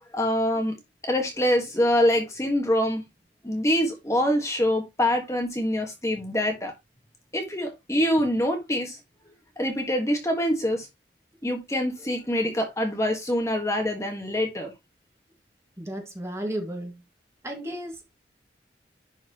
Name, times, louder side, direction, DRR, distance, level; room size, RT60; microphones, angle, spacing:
voice 1, 0.1-0.7 1.0-3.0 3.4-6.7 7.3-9.0 9.6-10.9 11.4-14.7, left 1 dB, 15° left, 1.5 m, -25 dB
voice 2, 15.8-17.0 17.4-18.2, right 1 dB, 15° right, 1.8 m, -34 dB
11.0 x 4.5 x 2.9 m
head